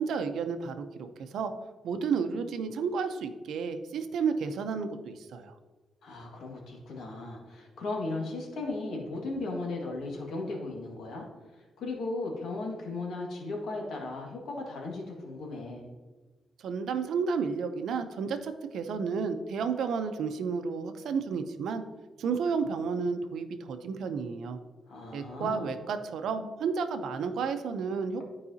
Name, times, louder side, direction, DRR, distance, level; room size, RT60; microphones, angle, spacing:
voice 1, 0.0-1.5 1.8-5.5 16.6-21.8 22.2-24.6 25.1-28.2, right 5 dB, 80° right, 8 dB, 0.6 m, -32 dB
voice 2, 6.0-11.3 11.8-15.9 24.9-25.7, left 2 dB, 80° left, -1 dB, 1.8 m, -36 dB
12.5 x 4.8 x 2.8 m, 1.3 s
wide cardioid pair, 160°, 0 cm